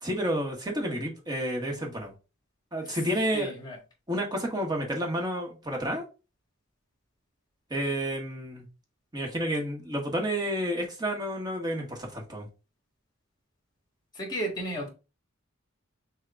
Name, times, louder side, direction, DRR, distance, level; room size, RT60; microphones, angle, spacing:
voice 1, 0.0-2.1 2.7-3.5 4.1-6.0 7.7-8.7 9.1-12.5, equal, 20° right, 1.2 m, -30 dB
voice 2, 3.3-3.8 14.1-14.9, right 1 dB, 20° left, 1.6 m, -33 dB
6.3 x 2.2 x 3.5 m
head